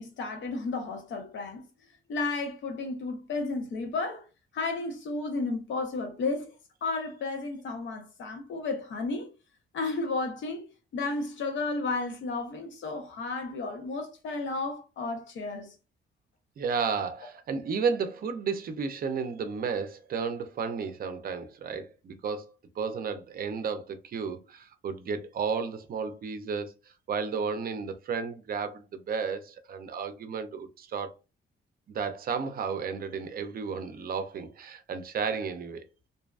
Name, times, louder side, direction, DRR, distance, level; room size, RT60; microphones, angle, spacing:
voice 1, 0.0-1.6 2.1-4.2 4.5-6.5 6.8-9.3 9.7-10.7 10.9-15.8, left 3 dB, 70° left, 0.8 m, -33 dB
voice 2, 16.6-26.7 27.1-31.1 31.9-35.8, right 5 dB, 50° right, 0.5 m, -33 dB
2.6 x 2.2 x 2.4 m
cardioid pair, 90°, 20 cm